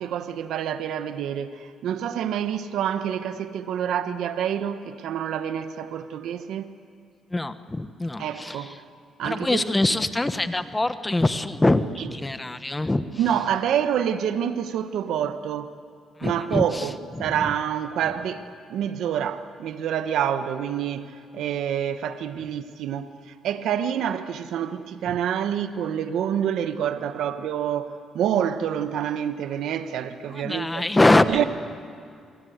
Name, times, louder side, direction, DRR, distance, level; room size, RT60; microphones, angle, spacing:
voice 1, 0.0-6.7 8.2-8.8 9.2-9.7 12.0-12.1 13.2-15.7 16.2-30.8 31.3-31.4, right 9 dB, 80° right, 1.2 m, -27 dB
voice 2, 7.3-8.8 9.2-13.0 16.2-16.9 17.2-17.5 25.1-25.2 30.3-31.4, left 2 dB, 15° left, 1.3 m, -24 dB
28.0 x 23.0 x 8.1 m
cardioid pair, 90°, 0 cm